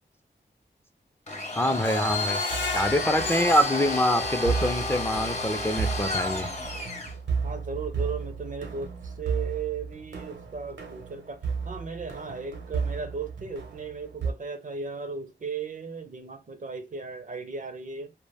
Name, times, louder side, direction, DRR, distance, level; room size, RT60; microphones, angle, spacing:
Domestic sounds home sounds, 1.3-7.2, left 2 dB, 35° left, 0.8 m, -31 dB
voice 1, 1.6-2.4 2.7-6.5, equal, 15° left, 0.4 m, -25 dB
Screech, 1.8-4.8 5.2-5.3 5.7-5.8, left 5 dB, 85° left, 0.5 m, -36 dB
sound 1, 2.5-14.3, right 5 dB, 75° right, 0.7 m, -34 dB
voice 2, 7.4-18.1, right 5 dB, 45° right, 0.5 m, -36 dB
2.2 x 2.1 x 3.3 m
cardioid pair, 55°, 19 cm